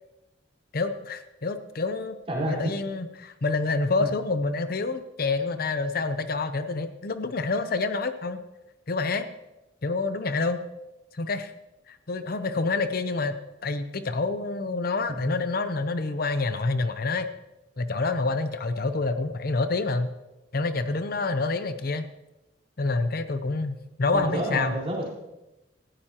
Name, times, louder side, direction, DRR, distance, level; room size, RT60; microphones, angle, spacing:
voice 1, 0.7-2.2 2.4-8.4 8.9-9.3 9.8-10.6 11.1-11.5 11.9-13.3 13.6-17.3 17.8-20.1 20.5-22.1 22.8-24.7, left 3 dB, 55° left, 10 dB, 0.7 m, -27 dB
voice 2, 2.3-2.6 4.0-4.1 15.1-15.4 24.1-25.1, right 1 dB, 35° right, -5 dB, 4.4 m, -29 dB
18.5 x 14.0 x 2.9 m, 0.97 s
head